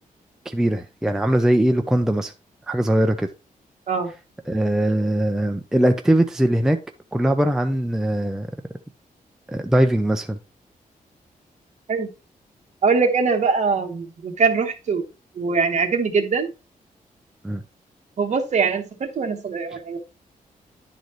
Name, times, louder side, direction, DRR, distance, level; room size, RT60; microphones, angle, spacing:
voice 1, 0.5-2.3 2.7-3.3 4.5-6.8 7.1-8.5 9.5-10.4 17.4-17.6, right 1 dB, 5° right, 6 dB, 0.4 m, -20 dB
voice 2, 12.8-15.0 15.4-16.5 18.2-20.0, right 5 dB, 50° right, 5 dB, 1.2 m, -22 dB
10.5 x 4.1 x 3.0 m, 0.30 s
wide cardioid pair, 160°, 15 cm